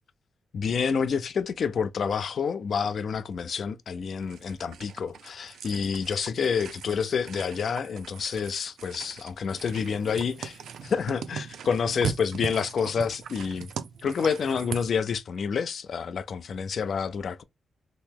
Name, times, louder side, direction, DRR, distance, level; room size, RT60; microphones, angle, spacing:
voice 1, 0.5-13.7 14.0-17.4, left 6 dB, 55° left, 0.3 m, -28 dB
sound 1, 4.2-14.9, right 7 dB, 90° right, 0.4 m, -39 dB
3.0 x 2.8 x 3.5 m
wide cardioid pair, 150°, 0 cm